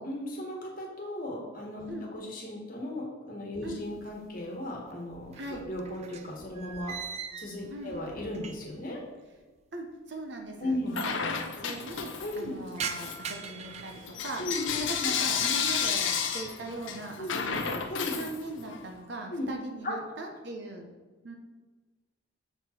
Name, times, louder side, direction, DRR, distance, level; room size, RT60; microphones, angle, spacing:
voice 1, 0.0-9.0 10.6-11.0 12.2-12.5 14.4-15.1 17.2-17.4 17.9-18.1 19.3-19.5 19.8-20.0, left 1 dB, 45° left, -1 dB, 1.3 m, -36 dB
sound 1, 3.6-4.5 4.8-8.9 9.2-9.3 10.1-10.2 10.4-10.5 10.8-11.3 11.7-14.9 15.3-15.8 16.3-16.7 17.1-18.0, right 6 dB, 30° right, 0.3 m, -43 dB
voice 2, 9.7-14.4 14.8-17.8 18.1-20.9 21.2-21.3, right 2 dB, 55° right, 3 dB, 0.8 m, -40 dB
Bell / Coin (dropping), 10.9-12.5 12.9-18.8, left 7 dB, 70° left, 0.6 m, -32 dB
6.7 x 4.4 x 4.4 m, 1.3 s
head